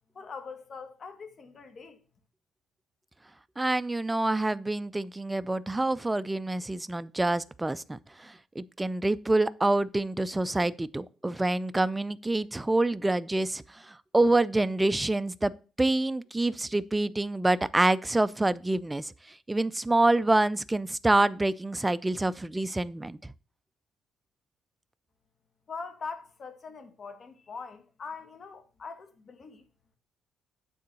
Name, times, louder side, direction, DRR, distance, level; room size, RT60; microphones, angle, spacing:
voice 1, 0.1-2.0 25.7-29.6, left 4 dB, 40° left, 1.5 m, -42 dB
voice 2, 3.6-15.5 15.8-19.1 19.5-23.2, right 2 dB, 10° right, 0.4 m, -27 dB
9.4 x 3.8 x 6.8 m
cardioid pair, 125°, 0 cm